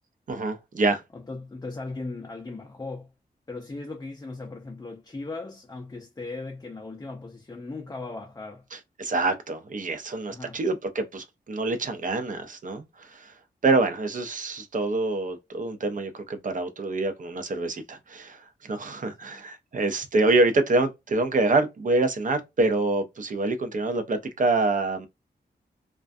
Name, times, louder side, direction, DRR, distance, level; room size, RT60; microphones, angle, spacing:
voice 1, 0.3-1.0 8.7-13.3 13.6-25.1, right 2 dB, 50° right, 0.5 m, -26 dB
voice 2, 1.1-3.1 3.5-8.6 10.3-10.6 19.2-19.4, left 3 dB, 20° left, 0.4 m, -38 dB
2.3 x 2.1 x 2.5 m
wide cardioid pair, 105°, 18 cm